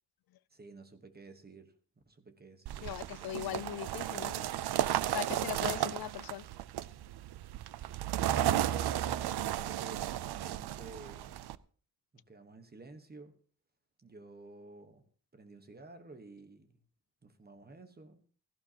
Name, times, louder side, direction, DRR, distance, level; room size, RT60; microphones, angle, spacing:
voice 1, 0.5-1.7 2.1-3.5 8.2-11.3 12.1-13.4 14.0-15.1 15.3-16.8 17.2-18.2, right 3 dB, 25° right, 1.2 m, -52 dB
sound 1, 2.7-11.6, right 12 dB, 85° right, 0.6 m, -34 dB
voice 2, 2.8-4.5 5.1-6.5, left 13 dB, 70° left, 0.5 m, -39 dB
16.5 x 14.5 x 2.9 m
wide cardioid pair, 155°, 38 cm